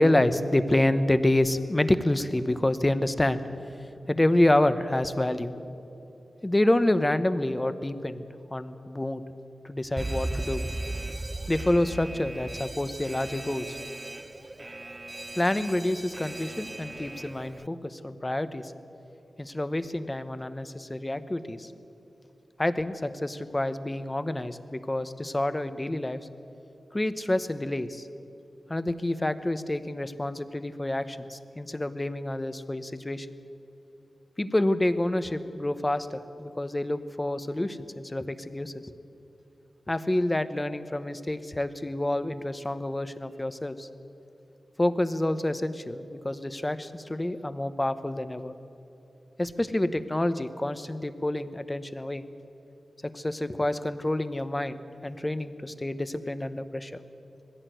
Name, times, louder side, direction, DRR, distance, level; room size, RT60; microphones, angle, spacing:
voice 1, 0.0-3.4 4.1-5.5 6.4-8.2 8.5-9.2 9.6-10.6 11.5-13.8 15.4-18.7 19.4-21.7 22.6-26.2 26.9-28.1 28.7-33.3 34.4-38.9 39.9-43.9 44.8-48.5 49.4-52.2 53.0-56.9, left 1 dB, 20° left, 11 dB, 1.0 m, -28 dB
Alarm, 10.0-17.7, right 2 dB, 25° right, 0.4 m, -37 dB
20.5 x 15.5 x 9.2 m, 2.9 s
wide cardioid pair, 85°, 0 cm